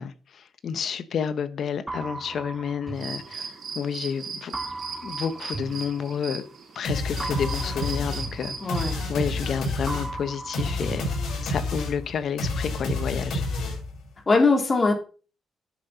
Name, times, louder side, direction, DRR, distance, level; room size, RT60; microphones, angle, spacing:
voice 1, 0.0-4.5 5.0-6.4 6.7-11.2 11.4-13.4, left 7 dB, 60° left, 1.3 m, -30 dB
sound 1, 1.9-3.9 4.5-6.6 7.2-9.5 9.9-11.9, right 3 dB, 10° right, 1.5 m, -38 dB
sound 2, 2.9-9.9, right 5 dB, 65° right, 3.9 m, -39 dB
sound 3, 6.8-14.0, left 2 dB, 80° left, 6.2 m, -29 dB
voice 2, 8.6-9.0 14.3-14.9, left 3 dB, 30° left, 3.2 m, -21 dB
11.0 x 6.7 x 5.7 m
cardioid pair, 115°, 0 cm